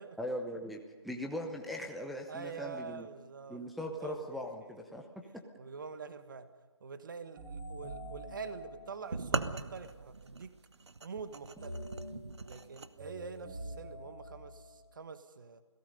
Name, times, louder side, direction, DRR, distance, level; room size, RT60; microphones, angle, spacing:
voice 1, 0.2-3.1 3.5-5.1 5.3-5.4, equal, ahead, 1 dB, 0.8 m, -40 dB
voice 2, 2.3-3.6 4.0-4.5 5.6-6.5 6.8-10.6 11.0-11.8 12.4-15.6, right 5 dB, 45° right, 10 dB, 1.7 m, -45 dB
sound 1, 7.4-10.4 11.6-14.9, right 1 dB, 25° right, 7.4 m, -46 dB
sound 2, 9.1-12.9, right 3 dB, 65° right, 1.3 m, -39 dB
29.0 x 17.5 x 5.4 m, 1.4 s
figure-of-eight pair, 155°, 15 cm